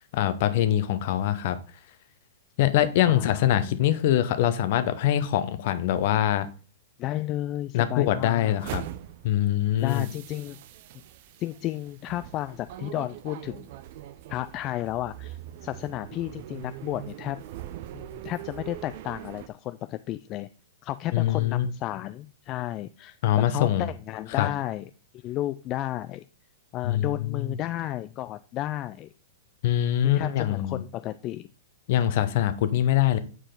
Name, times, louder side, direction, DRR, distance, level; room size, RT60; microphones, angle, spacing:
voice 1, 0.1-1.6 2.6-6.5 7.7-8.8 9.2-10.1 21.1-21.7 23.2-23.9 24.4-24.5 26.8-27.6 29.6-30.8 31.9-33.2, left 12 dB, 55° left, 12 dB, 0.8 m, -23 dB
voice 2, 3.1-3.8 7.0-8.7 9.8-10.6 11.4-13.7 14.3-17.4 17.9-20.5 20.8-24.9 25.2-26.3 26.7-29.1 30.0-31.5 32.3-32.4, left 14 dB, 35° left, 11 dB, 0.3 m, -33 dB
sound 1, 8.6-19.5, right 13 dB, 55° right, 0.5 m, -42 dB
6.7 x 4.7 x 3.8 m, 0.38 s
hypercardioid pair, 120°, 0 cm